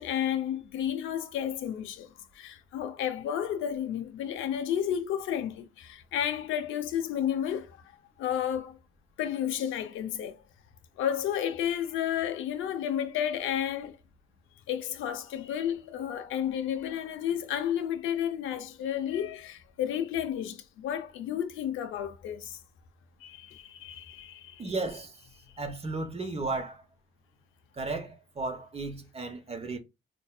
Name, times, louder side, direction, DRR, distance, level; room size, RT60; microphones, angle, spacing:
voice 1, 0.0-7.8 8.2-8.8 9.2-10.4 11.0-14.0 14.7-22.6 23.2-24.6, left 10 dB, 90° left, 0.5 m, -32 dB
voice 2, 24.6-25.2 25.6-26.8 27.8-29.8, right 3 dB, 30° right, 0.9 m, -34 dB
4.5 x 2.6 x 2.3 m
cardioid pair, 90°, 20 cm